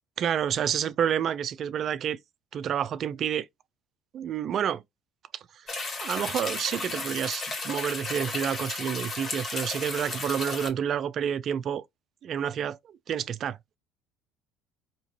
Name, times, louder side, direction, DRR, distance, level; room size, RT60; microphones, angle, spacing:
voice 1, 0.2-2.2 2.5-3.5 4.1-4.8 5.3-5.4 6.0-11.8 12.2-12.8 13.1-13.6, right 9 dB, 50° right, 0.5 m, -29 dB
sound 1, 5.7-10.7, left 3 dB, 40° left, 1.9 m, -34 dB
4.3 x 3.0 x 2.9 m
supercardioid pair, 100°, 0 cm